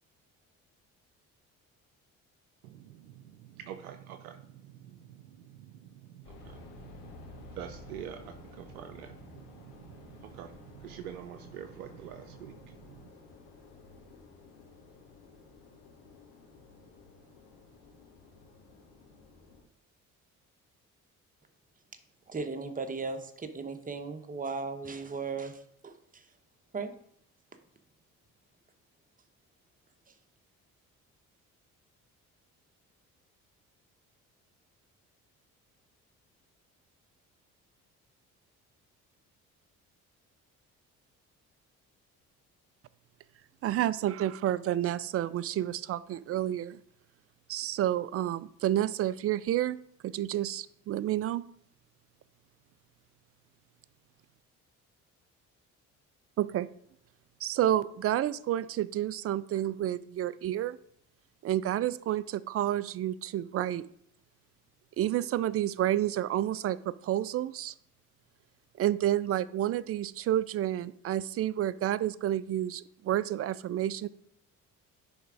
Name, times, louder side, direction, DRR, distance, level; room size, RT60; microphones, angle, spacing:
voice 1, 2.6-4.4 4.8-5.7 6.1-13.1, right 10 dB, 85° right, 8 dB, 0.5 m, -46 dB
sound 1, 6.2-19.6, left 3 dB, 80° left, 1.4 m, -53 dB
voice 2, 22.3-26.3 26.7-26.9, right 4 dB, 20° right, 8 dB, 1.0 m, -37 dB
voice 3, 43.6-46.8 47.5-49.8 50.0-51.4 56.4-56.7 57.4-60.8 61.4-63.8 65.0-67.7 68.8-74.1, right 12 dB, 35° right, 19 dB, 0.4 m, -30 dB
10.0 x 3.5 x 5.0 m, 0.67 s
hypercardioid pair, 45°, 43 cm